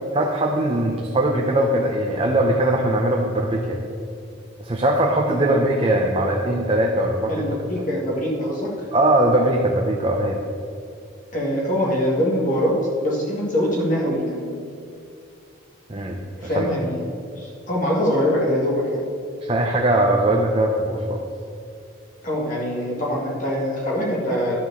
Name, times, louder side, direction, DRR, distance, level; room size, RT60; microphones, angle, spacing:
voice 1, 0.1-3.8 4.6-7.5 8.9-10.4 15.9-16.2 16.5-16.7 19.4-21.2, right 1 dB, 25° right, 1 dB, 0.6 m, -20 dB
voice 2, 7.3-8.9 11.3-12.7 13.0-14.6 16.4-17.0 17.4-19.0 22.2-24.6, equal, 40° left, -4 dB, 1.9 m, -23 dB
11.5 x 4.6 x 6.9 m, 2.4 s
head